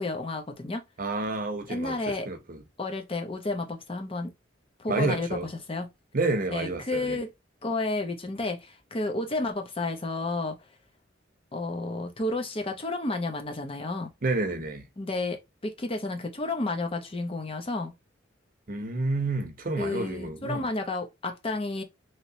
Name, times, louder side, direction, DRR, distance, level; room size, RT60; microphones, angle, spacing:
voice 1, 0.0-0.8 1.7-2.3 2.8-4.3 4.8-5.3 5.7-5.9 6.5-7.3 7.6-10.6 11.5-14.1 15.0-17.9 19.8-21.8, left 2 dB, 30° left, 0.7 m, -31 dB
voice 2, 1.0-2.6 4.9-5.5 6.1-7.2 14.2-14.8 18.7-20.6, right 2 dB, 50° right, 0.8 m, -29 dB
3.0 x 2.9 x 2.7 m
head